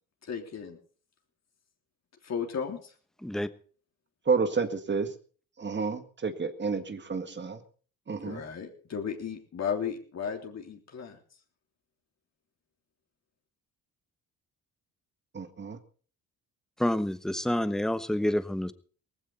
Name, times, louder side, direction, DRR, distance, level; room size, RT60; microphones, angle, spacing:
voice 1, 0.2-0.8 2.2-2.9 8.2-11.2, left 7 dB, 50° left, 2 dB, 3.4 m, -35 dB
voice 2, 4.3-5.1 5.6-7.6 8.1-8.4 15.3-15.8, right 5 dB, 35° right, 9 dB, 1.8 m, -30 dB
voice 3, 16.8-18.7, left 1 dB, ahead, 12 dB, 1.1 m, -28 dB
18.0 x 15.5 x 4.1 m, 0.42 s
cardioid pair, 90°, 34 cm